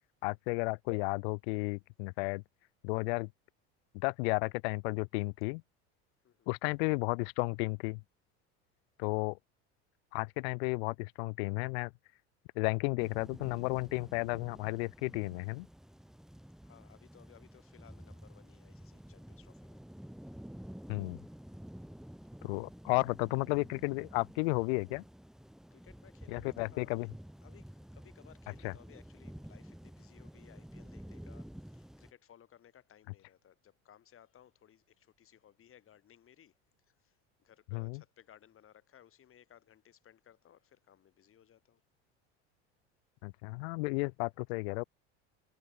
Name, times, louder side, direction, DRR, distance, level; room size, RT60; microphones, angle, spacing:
voice 1, 0.2-2.4 2.8-3.3 3.9-5.6 6.5-8.0 9.0-9.4 10.1-11.9 12.6-15.7 20.9-21.2 22.4-25.0 26.3-27.1 28.6-28.7 37.7-38.0 43.2-44.8, left 30 dB, 75° left, 0.5 m, -33 dB
sound 1, 13.0-32.1, equal, ahead, 7.3 m, -51 dB
voice 2, 16.6-19.8 25.7-27.1 27.4-36.5 36.9-41.8, left 10 dB, 40° left, 7.6 m, -61 dB
supercardioid pair, 100°, 33 cm